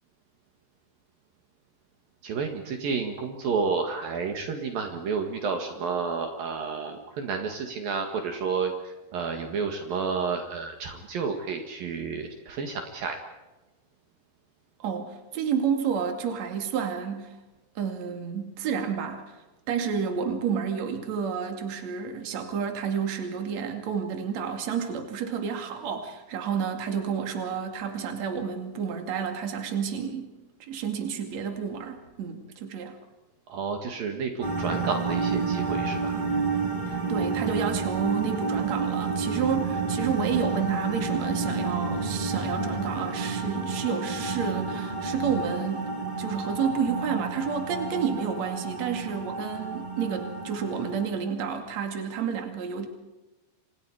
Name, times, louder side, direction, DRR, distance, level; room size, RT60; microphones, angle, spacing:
voice 1, 2.2-13.2 33.5-36.2, right 5 dB, 65° right, 4 dB, 3.4 m, -30 dB
voice 2, 14.8-17.3 17.7-19.4 19.7-30.3 30.6-33.0 36.9-45.9 46.2-52.9, right 7 dB, 45° right, 4 dB, 3.4 m, -30 dB
sound 1, 34.4-51.1, right 4 dB, 15° right, 2.0 m, -30 dB
30.0 x 26.5 x 4.9 m, 1.1 s
omnidirectional pair, 4.7 m